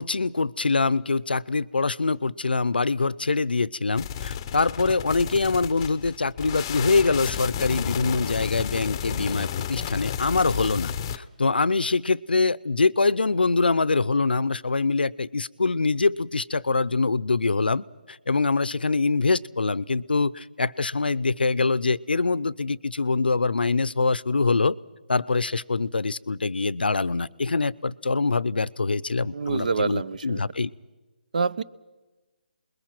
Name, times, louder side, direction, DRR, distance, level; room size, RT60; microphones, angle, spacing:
voice 1, 0.0-24.7 25.1-30.7, left 3 dB, 90° left, 21 dB, 0.7 m, -24 dB
sound 1, 4.0-11.2, left 9 dB, 25° left, 0.7 m, -32 dB
voice 2, 29.3-30.4 31.3-31.6, right 4 dB, 55° right, 17 dB, 0.7 m, -26 dB
29.0 x 21.5 x 6.1 m, 1.2 s
hypercardioid pair, 160°, 5 cm